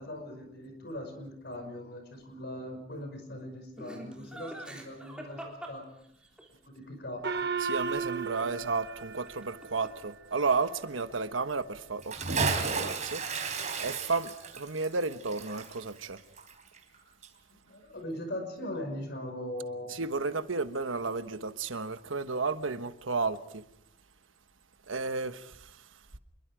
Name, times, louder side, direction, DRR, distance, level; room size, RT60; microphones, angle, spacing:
voice 1, 0.0-5.8 6.6-7.5 8.3-8.5 17.5-20.0, left 1 dB, 55° left, 5.7 m, -40 dB
Laughter, 3.8-6.5 9.3-10.1 10.3-10.9, right 1 dB, 5° right, 3.7 m, -45 dB
Gong, 7.2-10.1, right 5 dB, 60° right, 1.1 m, -35 dB
voice 2, 7.6-13.2 13.8-16.2 19.9-23.6 24.9-25.8, right 4 dB, 90° right, 1.2 m, -33 dB
Bathtub (filling or washing) / Splash splatter, 12.0-17.0 17.2-17.3, right 4 dB, 40° right, 3.6 m, -33 dB
26.5 x 22.5 x 5.0 m
head